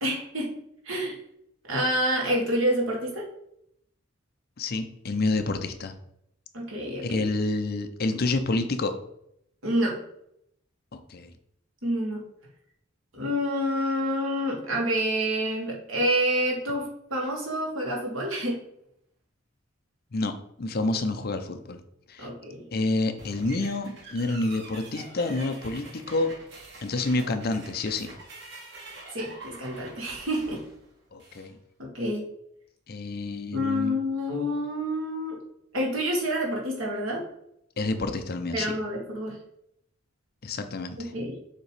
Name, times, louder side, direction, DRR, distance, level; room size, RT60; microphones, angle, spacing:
voice 1, 0.0-0.5 0.8-1.2 1.7-3.3 6.5-7.2 9.6-10.0 11.8-12.3 13.1-18.6 22.2-22.7 29.1-30.6 31.8-32.3 33.5-35.4 35.7-37.2 38.5-39.4 41.0-41.4, equal, 85° right, -2 dB, 1.8 m, -28 dB
voice 2, 4.6-5.9 7.0-8.9 10.9-11.3 20.1-21.8 22.1-22.3 22.7-26.3 26.8-28.1 31.1-31.6 32.9-34.0 37.8-38.8 40.4-41.1, left 2 dB, 50° left, 8 dB, 0.6 m, -28 dB
sound 1, 23.2-31.5, right 2 dB, 60° right, 1.4 m, -46 dB
6.7 x 2.9 x 4.8 m, 0.75 s
head